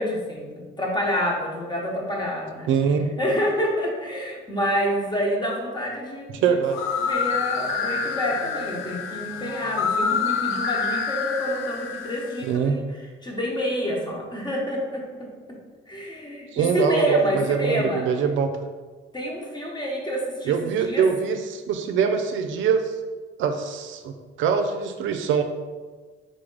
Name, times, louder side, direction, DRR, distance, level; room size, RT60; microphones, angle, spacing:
voice 1, 0.0-2.7 3.2-6.5 7.1-12.8 13.2-15.3 15.9-18.1 19.1-21.0, equal, 20° left, -1 dB, 1.1 m, -27 dB
voice 2, 2.7-3.1 6.3-6.8 12.4-12.8 16.5-18.6 20.5-22.9 23.4-25.4, right 6 dB, 75° right, 6 dB, 0.4 m, -23 dB
sound 1, 6.6-12.5, left 6 dB, 85° left, 0.4 m, -27 dB
3.7 x 3.3 x 3.9 m, 1.4 s
cardioid pair, 90°, 20 cm